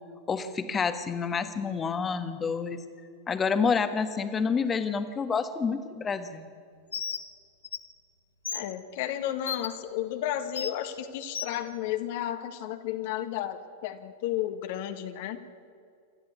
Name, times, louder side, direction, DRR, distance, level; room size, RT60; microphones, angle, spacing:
voice 1, 0.3-2.8 3.3-6.5, left 5 dB, 20° left, 10 dB, 1.5 m, -28 dB
Bird, 6.9-7.2 7.6-7.8 8.5-8.6 9.5-9.7 10.6-10.7 11.3-11.5, left 6 dB, 70° left, 1.3 m, -33 dB
voice 2, 8.5-15.4, left 11 dB, 50° left, 8 dB, 1.5 m, -33 dB
27.0 x 13.5 x 8.5 m, 2.4 s
figure-of-eight pair, 90°, 0 cm